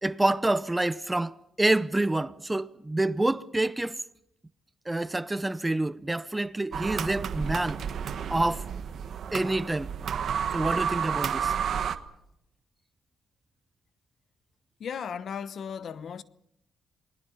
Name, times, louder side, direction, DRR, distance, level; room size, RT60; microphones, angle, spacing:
voice 1, 0.0-4.0 4.9-7.8 8.3-8.7 9.3-9.9 10.5-11.5, right 2 dB, 15° right, 0.7 m, -27 dB
sound 1, 6.7-12.0, right 7 dB, 60° right, 1.4 m, -31 dB
voice 2, 14.8-16.2, left 7 dB, 55° left, 1.0 m, -36 dB
28.5 x 21.0 x 5.7 m
cardioid pair, 90°, 0 cm